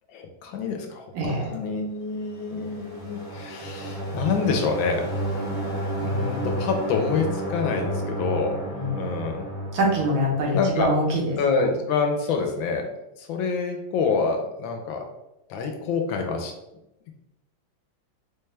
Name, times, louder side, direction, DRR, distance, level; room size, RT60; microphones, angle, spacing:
voice 1, 0.1-1.0 1.5-5.1 6.0-8.7 8.9-9.4 10.5-10.9 11.4-12.9 13.2-15.0 15.5-16.5, left 4 dB, 80° left, 4 dB, 1.3 m, -26 dB
voice 2, 1.1-1.5 8.7-9.0 9.7-11.4, equal, 75° right, -3 dB, 1.7 m, -24 dB
sound 1, 2.3-11.0, right 1 dB, 45° left, 1.0 m, -31 dB
4.2 x 2.3 x 3.2 m, 0.93 s
omnidirectional pair, 2.2 m